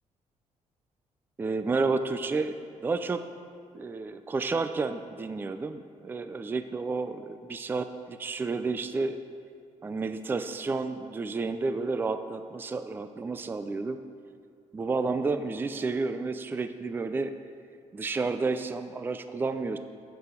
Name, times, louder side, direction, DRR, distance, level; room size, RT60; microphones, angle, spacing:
voice 1, 1.4-2.5 2.8-3.2 3.7-9.2 9.8-14.0 14.7-17.3 17.9-19.8, right 3 dB, 15° right, 9 dB, 0.4 m, -31 dB
11.5 x 6.9 x 8.2 m, 2.2 s
cardioid pair, 175°, 13 cm